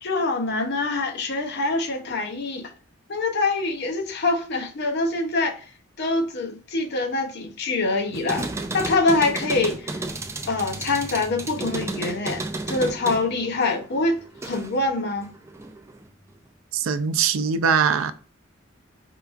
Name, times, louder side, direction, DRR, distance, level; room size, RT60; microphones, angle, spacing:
voice 1, 0.0-2.7 3.1-5.6 6.0-10.0 10.5-15.3, left 3 dB, 55° left, 0.6 m, -25 dB
sound 1, 8.1-14.9 15.2-16.1, right 2 dB, 15° right, 0.3 m, -33 dB
voice 2, 16.7-18.1, right 6 dB, 90° right, 0.4 m, -21 dB
4.6 x 2.3 x 2.4 m
head